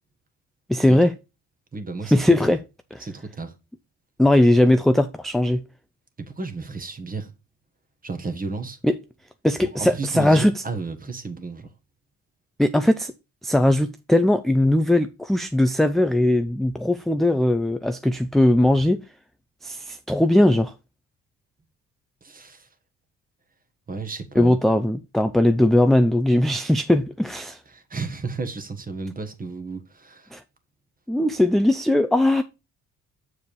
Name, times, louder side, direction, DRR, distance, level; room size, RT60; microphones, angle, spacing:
voice 1, 0.7-1.1 2.0-2.6 2.9-3.0 4.2-5.6 8.8-9.0 9.4-10.6 12.6-13.1 13.4-19.0 19.6-20.7 24.4-27.6 30.3-30.4 31.1-32.4, left 1 dB, ahead, 0.5 m, -19 dB
voice 2, 1.7-2.1 3.0-3.5 6.2-7.3 8.0-8.8 9.6-11.7 22.2-22.7 23.9-24.6 27.7-30.3, right 3 dB, 25° right, 1.5 m, -33 dB
7.2 x 4.8 x 4.7 m
cardioid pair, 90°, 33 cm